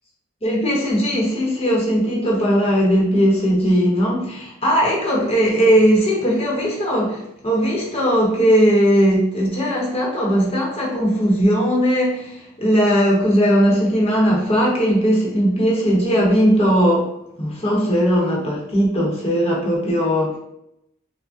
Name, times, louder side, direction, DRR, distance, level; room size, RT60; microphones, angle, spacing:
voice 1, 0.4-17.1 17.4-20.4, equal, 25° left, -4 dB, 0.9 m, -18 dB
4.9 x 2.1 x 2.4 m, 0.79 s
head